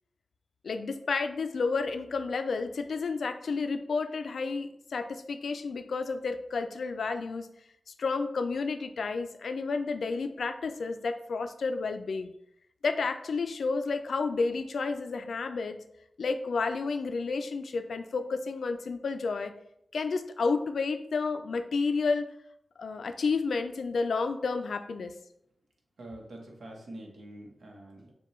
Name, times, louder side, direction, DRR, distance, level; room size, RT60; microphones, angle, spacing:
voice 1, 0.6-7.5 8.0-12.3 12.8-15.8 16.2-19.5 19.9-22.3 22.8-25.1, left 4 dB, 85° left, 9 dB, 0.3 m, -31 dB
voice 2, 26.0-28.1, right 1 dB, 75° right, 0 dB, 0.9 m, -45 dB
6.5 x 2.3 x 3.0 m, 0.76 s
wide cardioid pair, 115°, 0 cm